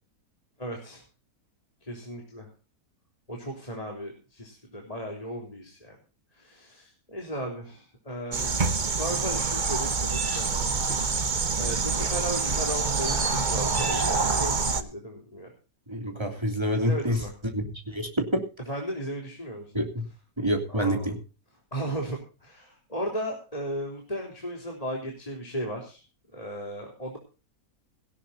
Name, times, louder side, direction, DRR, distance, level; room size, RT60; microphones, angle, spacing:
voice 1, 0.6-1.0 1.8-2.5 3.3-6.0 6.3-8.6 8.9-10.5 11.6-15.5 16.7-17.3 18.7-19.8 20.7-21.1 21.7-26.0 26.3-27.2, right 1 dB, 20° left, -1 dB, 3.8 m, -35 dB
sound 1, 8.3-14.8, right 4 dB, 30° right, 1.1 m, -26 dB
voice 2, 15.9-17.2 17.5-18.4 19.7-20.0 20.4-21.2, equal, 15° right, 2 dB, 3.2 m, -27 dB
18.0 x 16.5 x 2.8 m, 0.34 s
omnidirectional pair, 1.8 m